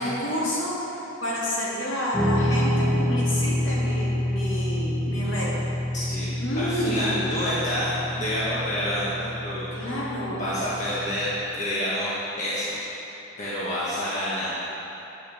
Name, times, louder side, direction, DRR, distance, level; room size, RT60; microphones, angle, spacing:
voice 1, 0.0-5.5 6.4-7.4 9.7-10.4, equal, 65° left, -7 dB, 2.6 m, -29 dB
Guitar, 2.1-11.4, left 1 dB, 5° left, 1.6 m, -28 dB
voice 2, 5.9-9.7 10.4-13.1 13.4-14.5, equal, 35° left, -9 dB, 1.6 m, -28 dB
9.4 x 6.8 x 7.0 m, 3.0 s
head